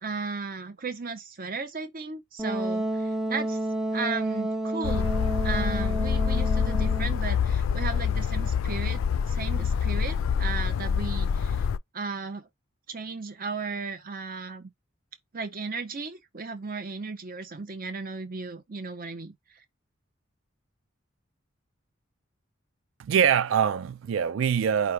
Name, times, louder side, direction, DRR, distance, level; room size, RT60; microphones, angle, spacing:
voice 1, 0.0-3.6 3.9-5.1 5.4-9.0 9.3-11.7 11.9-12.5 12.9-14.7 15.3-19.3, right 4 dB, 45° right, 0.9 m, -35 dB
Wind instrument woodwind instrument, 2.4-7.2, right 1 dB, 5° right, 0.6 m, -30 dB
sound 1, 4.8-11.8, left 6 dB, 80° left, 0.3 m, -26 dB
voice 2, 23.0-24.9, right 8 dB, 70° right, 0.4 m, -24 dB
5.0 x 2.3 x 4.6 m
head